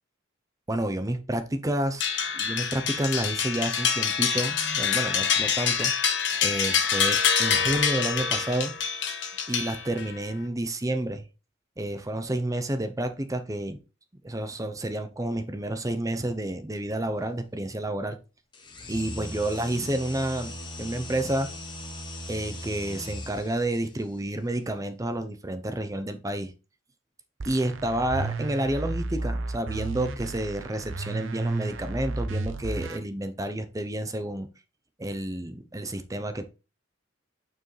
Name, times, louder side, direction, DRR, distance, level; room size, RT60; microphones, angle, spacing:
voice 1, 0.7-5.9 6.4-8.7 9.5-11.2 11.8-13.8 14.2-18.2 18.9-20.5 20.8-21.5 22.3-26.5 27.5-34.5 35.0-36.5, right 1 dB, 15° right, 0.7 m, -30 dB
sound 1, 2.0-10.2, left 7 dB, 65° left, 1.4 m, -26 dB
sound 2, 18.5-23.8, left 1 dB, 25° left, 1.3 m, -39 dB
sound 3, 27.4-33.0, right 3 dB, 85° right, 0.8 m, -33 dB
8.6 x 4.7 x 3.3 m
head